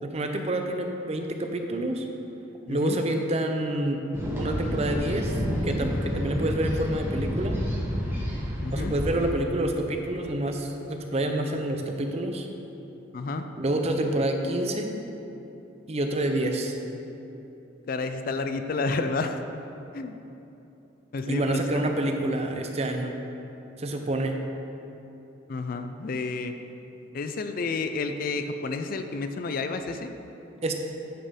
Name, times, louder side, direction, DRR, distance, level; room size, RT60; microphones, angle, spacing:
voice 1, 0.0-2.1 2.7-4.0 4.3-5.4 5.6-7.6 8.7-12.5 13.6-14.9 15.9-16.8 21.3-23.1 23.8-24.4 30.6-30.7, right 1 dB, 30° right, 4 dB, 0.5 m, -28 dB
voice 2, 2.7-3.0 8.6-8.9 13.1-13.5 17.9-19.4 19.9-20.2 21.1-21.8 25.5-26.5 27.1-30.1, left 3 dB, 45° left, 8 dB, 0.3 m, -30 dB
sound 1, 4.1-9.3, equal, 10° right, 1.2 m, -29 dB
9.0 x 4.4 x 5.1 m, 2.9 s
head